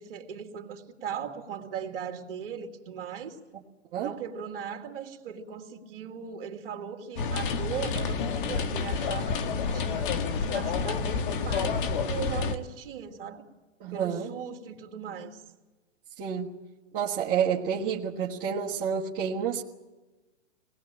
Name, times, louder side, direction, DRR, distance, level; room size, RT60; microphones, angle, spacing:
voice 1, 0.0-3.4 4.0-10.1 10.4-13.4 13.9-15.4, right 7 dB, 50° right, 2.6 m, -38 dB
sound 1, 7.2-12.6, left 5 dB, 45° left, 1.7 m, -29 dB
voice 2, 13.8-14.3 16.2-16.5 16.9-19.6, right 7 dB, 25° right, 1.5 m, -29 dB
26.5 x 19.5 x 8.8 m
hypercardioid pair, 150°, 36 cm